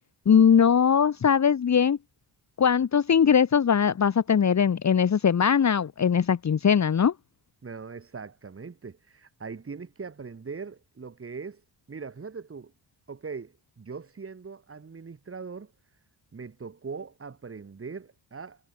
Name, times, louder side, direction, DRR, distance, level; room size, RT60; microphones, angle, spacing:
voice 1, 0.2-2.0 2.6-7.1, left 7 dB, 40° left, 1.7 m, -21 dB
voice 2, 7.6-11.6 11.9-12.7 13.1-15.7 16.3-18.6, right 5 dB, 30° right, 6.1 m, -40 dB
cardioid pair, 120°, 43 cm